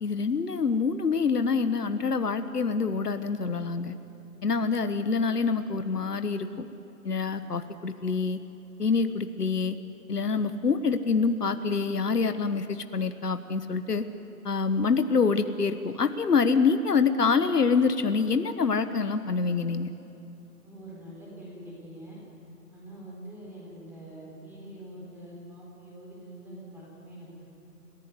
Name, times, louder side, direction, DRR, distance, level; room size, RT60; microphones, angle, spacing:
voice 1, 0.0-3.9 4.4-6.7 7.0-8.4 8.8-9.8 10.1-14.0 14.4-19.9, left 5 dB, 75° left, 10 dB, 1.3 m, -26 dB
voice 2, 20.6-22.2 22.7-27.5, right 1 dB, 5° right, -5 dB, 4.3 m, -45 dB
27.5 x 15.5 x 9.5 m, 2.9 s
figure-of-eight pair, 150°, 48 cm